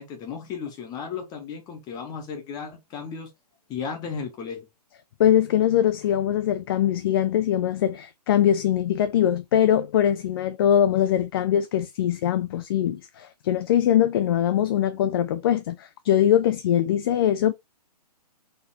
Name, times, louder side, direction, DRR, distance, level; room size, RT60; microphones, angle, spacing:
voice 1, 0.0-3.3 3.7-4.7, left 6 dB, 20° left, 1.0 m, -34 dB
voice 2, 5.2-17.5, left 10 dB, 35° left, 0.4 m, -22 dB
4.3 x 2.6 x 4.2 m
hypercardioid pair, 135°, 21 cm